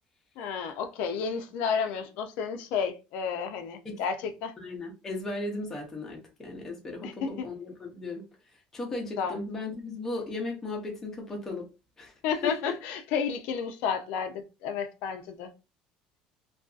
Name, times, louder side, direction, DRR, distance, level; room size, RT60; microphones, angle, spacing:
voice 1, 0.4-4.5 7.0-7.4 9.2-9.4 12.2-15.5, left 6 dB, 60° left, 0.4 m, -31 dB
voice 2, 4.6-8.2 8.7-11.7 12.0-12.1 12.4-12.5, left 2 dB, 15° left, 0.6 m, -36 dB
2.6 x 2.3 x 2.3 m
cardioid pair, 175°, 3 cm